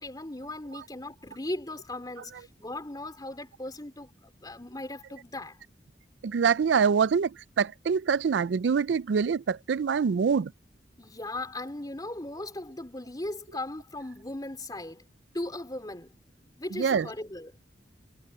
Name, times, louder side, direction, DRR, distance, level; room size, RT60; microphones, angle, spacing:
voice 1, 0.0-5.6 11.0-15.0 15.3-16.1 16.4-17.5, left 1 dB, 20° left, 3.8 m, -38 dB
voice 2, 6.2-10.5 16.8-17.1, right 6 dB, 80° right, 0.4 m, -25 dB
head